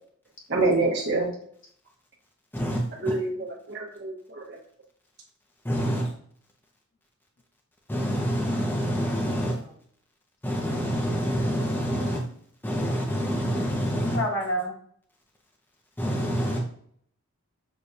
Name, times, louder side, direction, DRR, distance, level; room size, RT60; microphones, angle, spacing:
voice 1, 0.5-1.3 3.0-4.6, right 3 dB, 50° right, 1.0 m, -26 dB
voice 2, 5.7-6.1 7.9-9.5 10.4-12.2 12.6-14.2 16.0-16.6, equal, 10° left, 0.5 m, -27 dB
voice 3, 9.3-9.7 13.9-14.7, equal, 60° left, 1.2 m, -30 dB
6.2 x 2.3 x 2.6 m
head